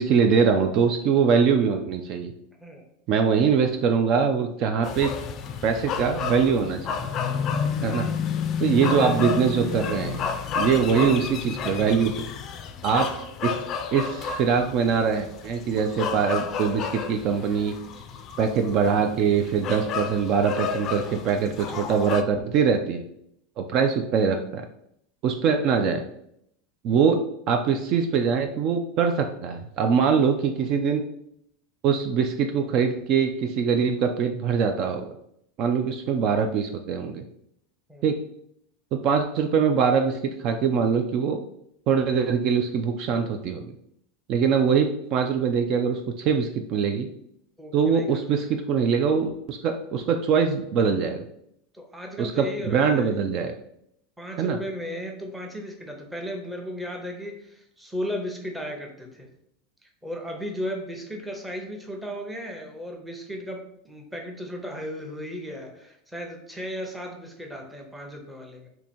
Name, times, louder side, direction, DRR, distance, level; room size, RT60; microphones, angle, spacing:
voice 1, 0.0-2.3 3.1-5.1 5.6-6.8 7.8-8.1 8.6-10.2 10.5-12.3 12.8-13.1 13.4-13.6 13.9-17.8 18.4-23.0 23.6-24.6 25.2-26.0 26.8-27.2 27.5-31.0 31.8-35.1 35.6-37.2 38.0-38.2 38.9-41.4 41.9-43.7 44.3-47.1 47.7-51.2 52.2-53.5 54.4-54.6, right 6 dB, 45° right, 5 dB, 0.3 m, -23 dB
sound 1, 4.8-22.2, left 6 dB, 40° left, 0.4 m, -31 dB
voice 2, 47.6-48.2 51.7-53.1 54.2-59.3 59.8-68.7, equal, 5° right, 1 dB, 0.7 m, -35 dB
2.8 x 2.6 x 4.2 m, 0.73 s
supercardioid pair, 130°, 0 cm